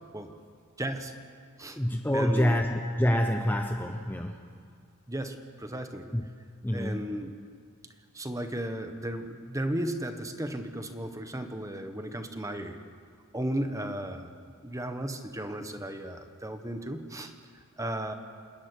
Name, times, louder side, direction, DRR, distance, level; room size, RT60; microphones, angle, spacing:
voice 1, 0.8-1.1 1.6-1.8 2.1-2.6 5.1-6.1 6.7-7.3 8.1-12.8 13.3-14.3 14.6-18.1, right 1 dB, 15° right, 7 dB, 1.4 m, -35 dB
voice 2, 1.7-4.6 6.1-6.3 6.6-7.1, equal, 10° left, 4 dB, 0.9 m, -27 dB
28.0 x 13.0 x 9.7 m, 2.1 s
head